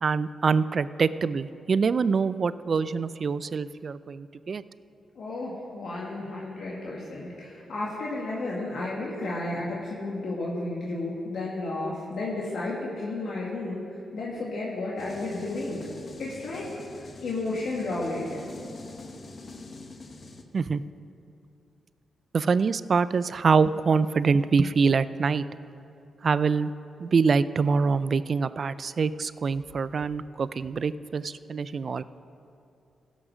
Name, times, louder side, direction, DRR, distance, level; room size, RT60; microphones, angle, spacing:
voice 1, 0.0-4.6 20.5-20.8 22.3-25.4 26.2-26.7 27.0-32.0, right 5 dB, 55° right, 16 dB, 0.3 m, -25 dB
voice 2, 5.2-13.8 14.1-15.9 16.2-18.4, left 2 dB, 70° left, -5 dB, 1.7 m, -32 dB
sound 1, 15.0-20.4, left 3 dB, 50° left, 1.0 m, -44 dB
15.5 x 6.2 x 6.1 m, 2.8 s
cardioid pair, 65°, 0 cm